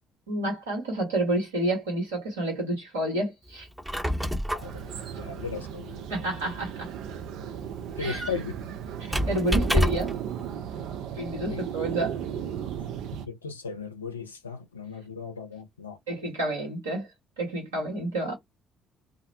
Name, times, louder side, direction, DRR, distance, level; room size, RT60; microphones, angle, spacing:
voice 1, 0.3-3.7 6.1-6.9 8.0-8.2 9.0-10.1 11.2-12.2 16.1-17.1 17.4-18.3, right 1 dB, 80° right, 1.2 m, -29 dB
Squeak, 3.6-10.3, equal, 10° right, 0.7 m, -30 dB
voice 2, 4.5-6.1 8.0-8.6 11.5-11.7 13.1-16.0 16.4-16.5, left 5 dB, 90° left, 0.4 m, -37 dB
sound 1, 4.6-13.3, right 9 dB, 65° right, 0.4 m, -35 dB
2.4 x 2.0 x 2.6 m
figure-of-eight pair, 50°, 0 cm